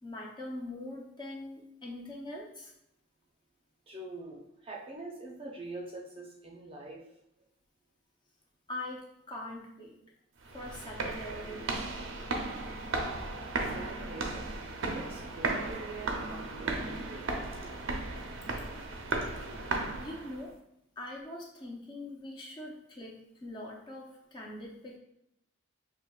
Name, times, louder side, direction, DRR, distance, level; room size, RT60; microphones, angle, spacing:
voice 1, 0.0-2.7 8.7-10.0 10.5-11.9 19.8-20.5 21.0-25.0, left 1 dB, 20° left, -1 dB, 0.6 m, -43 dB
voice 2, 3.9-7.2 11.0-11.1 11.5-11.6 12.3-12.4 13.7-14.4 14.9-17.9 19.1-19.8, right 2 dB, 25° right, -1 dB, 0.6 m, -45 dB
sound 1, 10.4-20.5, right 3 dB, 75° right, 0.6 m, -35 dB
6.2 x 2.8 x 2.3 m, 0.78 s
head